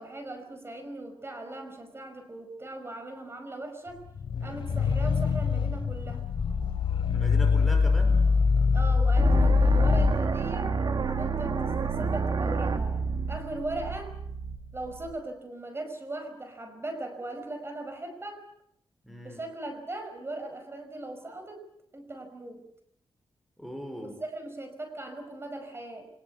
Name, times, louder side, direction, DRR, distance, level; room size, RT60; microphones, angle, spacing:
voice 1, 0.0-4.0 4.4-6.2 8.7-10.7 11.0-13.0 13.3-14.1 14.7-18.4 19.2-21.6 21.9-22.7 24.0-26.1, right 2 dB, 30° right, 6 dB, 5.3 m, -39 dB
sound 1, 4.1-10.2, left 4 dB, 80° left, 2.8 m, -23 dB
voice 2, 7.1-8.2 19.0-19.4 23.6-24.2, equal, ahead, 5 dB, 4.8 m, -39 dB
sound 2, 9.2-15.1, right 5 dB, 55° right, 2.1 m, -30 dB
25.5 x 19.5 x 8.3 m, 0.72 s
wide cardioid pair, 110°, 9 cm